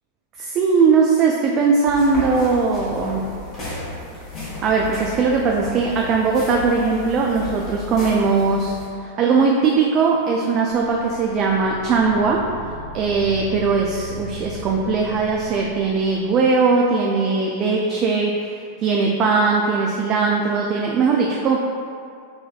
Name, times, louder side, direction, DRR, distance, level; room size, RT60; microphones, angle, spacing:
voice 1, 0.4-3.3 4.4-12.4 12.9-18.5 18.8-21.6, right 4 dB, 35° right, -1 dB, 0.3 m, -19 dB
sound 1, 1.9-8.8, left 2 dB, 35° left, 1.3 m, -34 dB
sound 2, 10.7-16.9, left 1 dB, 90° right, 0.8 m, -37 dB
5.6 x 2.6 x 2.2 m, 2.3 s
figure-of-eight pair, 90°, 0 cm